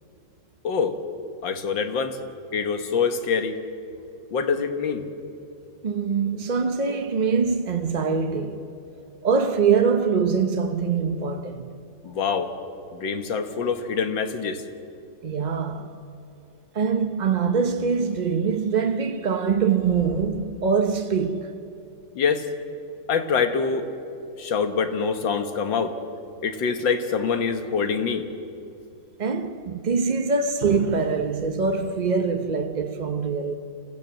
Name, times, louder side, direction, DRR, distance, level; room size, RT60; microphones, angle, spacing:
voice 1, 0.6-1.0 1.4-2.2 2.5-3.6 4.3-5.0 12.0-12.5 12.9-14.6 22.2-22.4 23.1-23.9 24.4-26.0 26.4-28.2, left 5 dB, 85° left, 2.1 m, -25 dB
voice 2, 5.8-8.7 9.2-11.7 15.2-15.9 16.7-21.5 29.2-33.5, right 5 dB, 50° right, 0.5 m, -23 dB
27.0 x 15.0 x 7.8 m
omnidirectional pair, 2.0 m